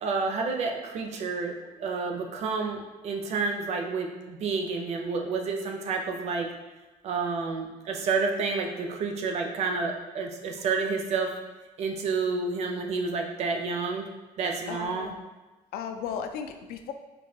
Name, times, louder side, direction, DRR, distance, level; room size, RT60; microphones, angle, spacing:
voice 1, 0.0-6.5 7.0-11.3 11.8-14.1 14.4-15.1, right 4 dB, 45° right, 2 dB, 0.5 m, -29 dB
voice 2, 14.7-15.2 15.7-16.9, left 7 dB, 85° left, 7 dB, 0.4 m, -35 dB
5.3 x 2.6 x 2.7 m, 1.2 s
cardioid pair, 180°, 15 cm